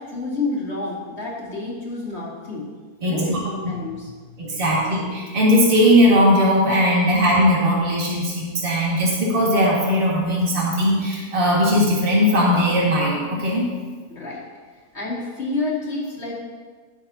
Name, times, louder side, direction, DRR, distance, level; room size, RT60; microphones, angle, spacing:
voice 1, 0.0-2.7 3.0-4.6 14.1-14.4 14.9-16.3, left 3 dB, 45° left, -5 dB, 2.8 m, -29 dB
voice 2, 3.0-3.4 4.4-13.7, equal, 35° right, -5 dB, 2.2 m, -18 dB
18.0 x 6.9 x 2.9 m, 1.5 s
omnidirectional pair, 1.6 m